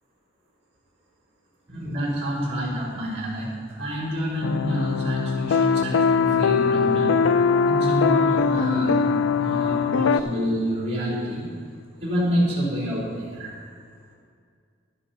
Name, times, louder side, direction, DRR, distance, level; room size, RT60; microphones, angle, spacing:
voice 1, 1.7-7.1 7.7-11.5 12.0-13.5, equal, 35° right, -6 dB, 3.7 m, -28 dB
sound 1, 4.4-10.2, left 5 dB, 80° left, 0.4 m, -21 dB
12.0 x 11.0 x 4.3 m, 2.1 s
head